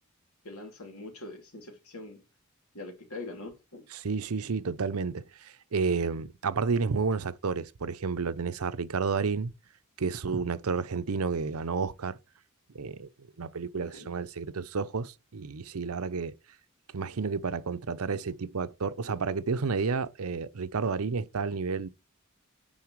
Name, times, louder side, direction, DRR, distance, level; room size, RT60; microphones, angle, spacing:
voice 1, 0.4-2.2 2.7-3.9 13.7-14.1, left 2 dB, 85° left, 2.9 m, -43 dB
voice 2, 4.0-9.5 10.0-12.2 12.7-13.1 13.4-16.3 16.9-21.9, right 5 dB, 90° right, 0.7 m, -31 dB
9.8 x 3.9 x 4.7 m
head